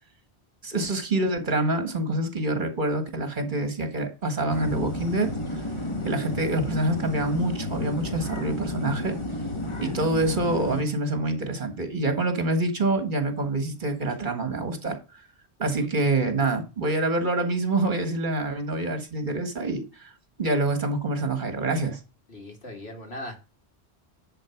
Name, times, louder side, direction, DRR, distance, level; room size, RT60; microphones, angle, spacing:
voice 1, 0.6-5.3 6.0-9.2 9.8-15.0 15.6-20.1 20.4-22.0, right 2 dB, 45° right, 1.8 m, -26 dB
sound 1, 4.5-10.8, left 1 dB, 30° left, 1.4 m, -32 dB
voice 2, 22.3-23.4, left 1 dB, 70° left, 2.8 m, -38 dB
10.5 x 4.5 x 5.9 m
omnidirectional pair, 1.1 m